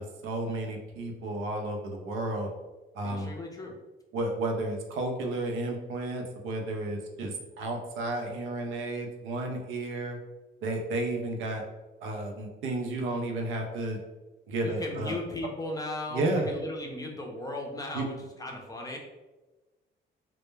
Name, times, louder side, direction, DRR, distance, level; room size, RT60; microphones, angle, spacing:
voice 1, 0.0-2.5 2.9-3.4 4.1-10.2 10.6-11.6 12.0-14.0 14.5-15.1 16.1-16.5 17.9-18.0, right 2 dB, 80° right, 3 dB, 0.5 m, -32 dB
voice 2, 3.0-3.7 14.6-19.0, left 2 dB, 20° left, 0 dB, 0.5 m, -36 dB
2.1 x 2.1 x 3.1 m, 1.1 s
cardioid pair, 90°, 20 cm